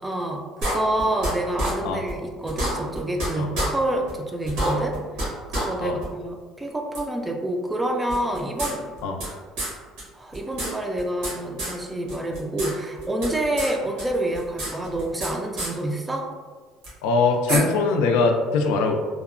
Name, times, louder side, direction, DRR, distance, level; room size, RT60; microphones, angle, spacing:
voice 1, 0.0-8.8 10.1-16.3, right 1 dB, 10° right, 2 dB, 0.3 m, -27 dB
sound 1, 0.6-1.3 1.6-1.7 2.1-2.2 2.5-3.3 3.5-3.7 4.1-4.2 4.5-5.3 5.5-5.6 6.0-6.1 6.9-7.0 8.1-9.3 9.6-9.7 10.0-10.1 10.3-11.3 11.6-11.7 12.1-12.7 13.0-13.7 14.0-15.3 15.6-15.7 16.8-16.9 17.5-17.6, right 1 dB, 80° right, 1.1 m, -27 dB
voice 2, 17.0-19.0, left 4 dB, 90° left, 4 dB, 0.3 m, -22 dB
2.8 x 2.1 x 2.4 m, 1.5 s
cardioid pair, 125°, 0 cm